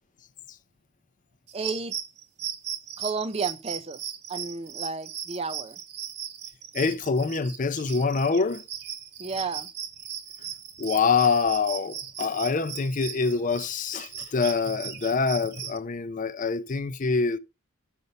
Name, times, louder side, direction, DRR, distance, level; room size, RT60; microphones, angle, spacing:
voice 1, 1.5-2.0 3.0-4.0 4.3-5.8 9.2-9.7, right 4 dB, 25° right, 0.5 m, -32 dB
sound 1, 1.5-15.8, right 9 dB, 50° right, 1.2 m, -38 dB
voice 2, 6.7-8.6 10.8-17.4, left 4 dB, 35° left, 0.4 m, -25 dB
6.7 x 5.3 x 6.8 m
head